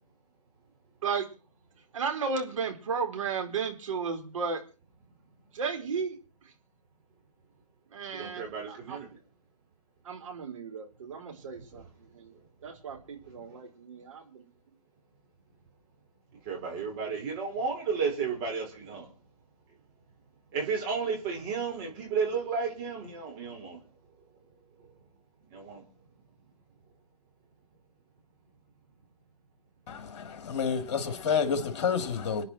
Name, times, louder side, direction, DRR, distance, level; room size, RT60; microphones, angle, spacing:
voice 1, 1.9-4.6 5.5-6.2 7.9-9.0 10.0-11.8 12.1-12.3 12.6-14.5, right 5 dB, 50° right, 4.7 m, -34 dB
voice 2, 8.1-9.1 11.6-11.8 12.3-12.4 13.2-13.6 16.3-19.1 20.5-23.8 24.8-24.9 25.5-25.8, right 5 dB, 30° right, 5.3 m, -33 dB
voice 3, 29.9-32.4, left 6 dB, 45° left, 3.1 m, -29 dB
26.5 x 10.0 x 4.5 m
figure-of-eight pair, 135°, 21 cm